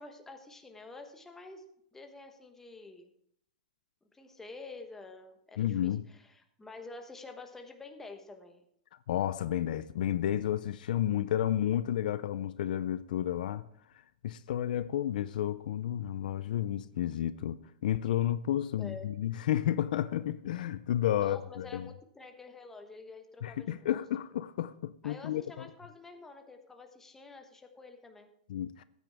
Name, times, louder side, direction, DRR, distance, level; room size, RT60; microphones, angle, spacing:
voice 1, 0.0-1.6 1.9-3.1 4.1-8.6 18.8-19.1 21.2-24.0 25.0-28.3, left 3 dB, 10° left, 1.2 m, -48 dB
voice 2, 5.6-6.0 9.1-13.6 14.2-17.6 17.8-21.9 23.4-25.7 28.5-28.8, left 11 dB, 70° left, 0.5 m, -31 dB
15.0 x 9.2 x 3.5 m
hypercardioid pair, 150°, 5 cm